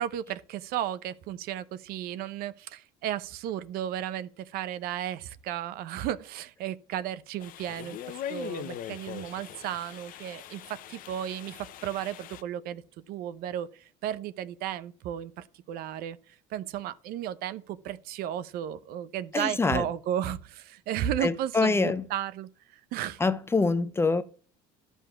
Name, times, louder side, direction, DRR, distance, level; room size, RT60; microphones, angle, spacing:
voice 1, 0.0-16.2 16.5-23.2, right 11 dB, 70° right, 0.9 m, -34 dB
sound 1, 7.4-12.4, left 11 dB, 60° left, 0.9 m, -41 dB
voice 2, 19.3-19.8 21.2-22.0 23.2-24.2, left 3 dB, 15° left, 0.8 m, -25 dB
12.0 x 5.5 x 6.1 m
cardioid pair, 120°, 16 cm